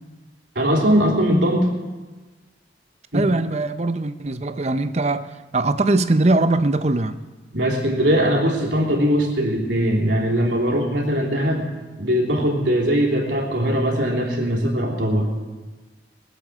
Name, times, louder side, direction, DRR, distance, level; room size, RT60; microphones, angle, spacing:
voice 1, 0.5-1.7 3.1-3.2 7.5-11.7 12.0-15.3, equal, 75° right, 3.3 m, -20 dB
voice 2, 3.1-7.2, right 2 dB, 35° right, 0.6 m, -21 dB
20.5 x 8.3 x 7.4 m
head